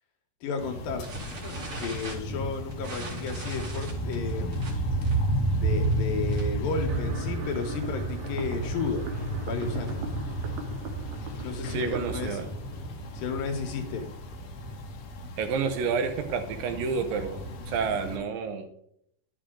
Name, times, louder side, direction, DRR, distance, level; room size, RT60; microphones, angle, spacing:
voice 1, 0.4-4.9 5.5-9.1 9.4-10.0 11.4-12.4 13.1-14.1, left 4 dB, 85° left, 5 dB, 3.0 m, -33 dB
sound 1, 0.6-18.2, right 1 dB, 65° left, 1.8 m, -32 dB
sound 2, 1.0-6.7 6.9-7.2 7.5-7.6 7.9-8.1 8.6-10.2, right 3 dB, 45° right, 3.1 m, -42 dB
sound 3, 6.9-13.9, right 3 dB, 65° right, 2.3 m, -42 dB
voice 2, 11.7-12.5 15.4-17.4 17.7-18.7, right 5 dB, 85° right, 7 dB, 2.8 m, -29 dB
11.5 x 6.9 x 3.8 m, 0.71 s
omnidirectional pair, 4.0 m